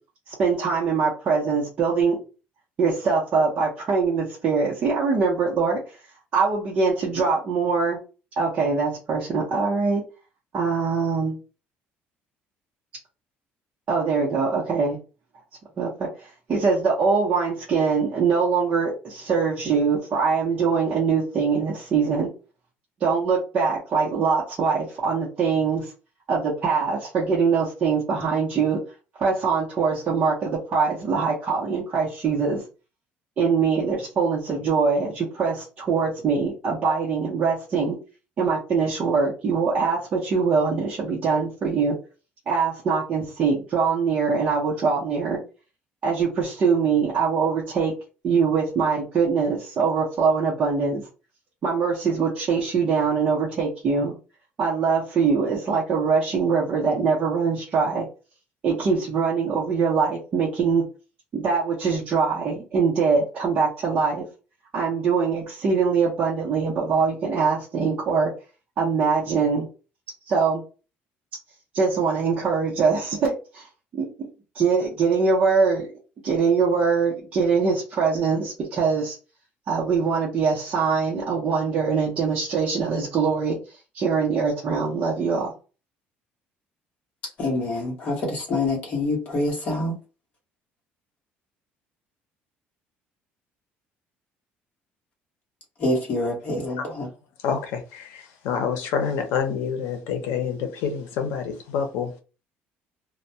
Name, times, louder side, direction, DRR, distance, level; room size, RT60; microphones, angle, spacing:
voice 1, 0.3-2.2 2.8-5.8 6.3-8.0 8.4-10.0 10.5-11.4 13.9-15.0 15.8-16.1 16.5-22.3 23.0-25.9 26.3-28.8 29.2-32.6 33.4-38.0 38.4-42.0 42.5-45.4 46.0-47.9 48.2-51.1 51.6-54.2 54.6-58.1 58.6-60.8 61.3-64.2 64.7-68.3 68.8-69.7 70.3-70.6 71.7-73.7 73.9-74.1 74.5-75.9 76.2-79.1 79.7-83.6 83.9-85.5, right 5 dB, 30° right, 0.7 m, -23 dB
voice 2, 87.4-90.0 95.8-97.1, left 2 dB, 35° left, 1.0 m, -26 dB
voice 3, 97.4-98.1 98.4-102.1, left 7 dB, 85° left, 0.7 m, -27 dB
2.2 x 2.2 x 2.7 m
cardioid pair, 175°, 4 cm